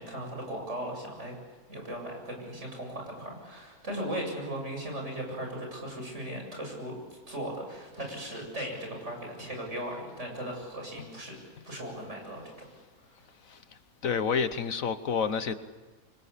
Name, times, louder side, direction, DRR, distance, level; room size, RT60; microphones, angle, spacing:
voice 1, 0.0-1.4 1.7-11.4 11.6-12.4, right 1 dB, 50° right, 1 dB, 8.3 m, -37 dB
voice 2, 14.0-15.5, left 6 dB, 65° left, 11 dB, 1.4 m, -28 dB
28.0 x 24.5 x 8.4 m, 1.3 s
omnidirectional pair, 1.6 m